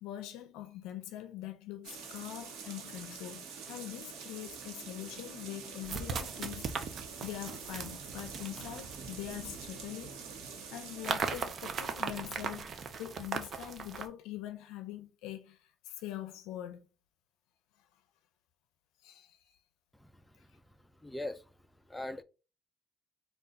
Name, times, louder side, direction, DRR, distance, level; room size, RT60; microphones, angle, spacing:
voice 1, 0.0-6.8 7.2-10.2 10.7-12.7 13.0-16.9 19.0-19.4, left 13 dB, 85° left, 0.5 m, -43 dB
sound 1, 1.8-11.1, right 5 dB, 85° right, 1.0 m, -46 dB
sound 2, 4.5-4.6 5.8-9.7 11.0-14.1, right 5 dB, 45° right, 0.6 m, -38 dB
voice 2, 20.0-20.6 21.0-21.5 21.9-22.2, left 1 dB, 5° left, 0.4 m, -41 dB
3.8 x 2.4 x 4.0 m
cardioid pair, 105°, 0 cm